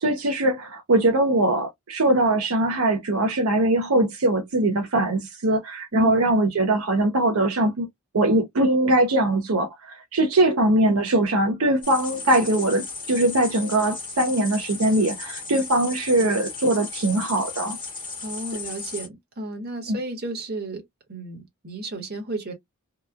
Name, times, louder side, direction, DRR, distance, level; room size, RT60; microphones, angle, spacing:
voice 1, 0.0-7.9 8.1-17.8 19.9-20.0, right 1 dB, 75° right, 0.7 m, -21 dB
voice 2, 5.9-6.3 18.2-22.5, right 2 dB, 45° right, 1.2 m, -33 dB
sound 1, 11.8-19.1, left 4 dB, 20° left, 1.1 m, -35 dB
2.9 x 2.2 x 2.2 m
head